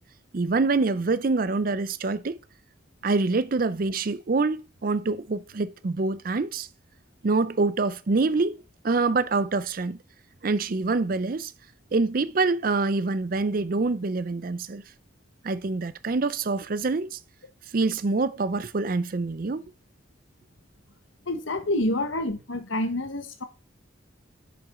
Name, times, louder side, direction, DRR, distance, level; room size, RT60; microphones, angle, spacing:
voice 1, 0.3-2.4 3.0-6.7 7.2-10.0 10.4-11.5 11.9-14.8 15.4-17.2 17.7-19.6, right 3 dB, 45° right, 0.5 m, -25 dB
voice 2, 21.3-23.4, left 1 dB, 85° left, 1.3 m, -28 dB
10.5 x 6.1 x 3.7 m
head